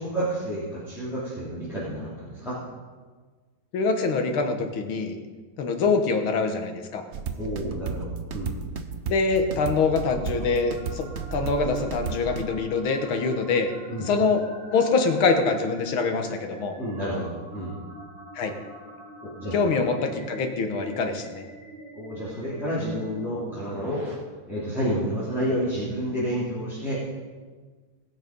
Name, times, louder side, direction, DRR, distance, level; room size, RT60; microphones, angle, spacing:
voice 1, 0.0-2.6 7.3-8.5 13.9-14.1 16.8-17.3 17.5-17.7 19.2-19.5 21.9-24.0 24.5-27.0, equal, ahead, -10 dB, 3.2 m, -30 dB
voice 2, 3.7-5.1 5.6-7.0 9.1-13.7 14.0-14.4 14.7-16.7 18.4-18.5 19.5-21.4, left 4 dB, 85° left, 5 dB, 2.1 m, -24 dB
sound 1, 7.1-12.4, right 6 dB, 65° right, 0.7 m, -33 dB
sound 2, 9.1-24.1, right 1 dB, 40° right, 3.2 m, -46 dB
19.5 x 6.6 x 5.3 m, 1.4 s
omnidirectional pair, 2.2 m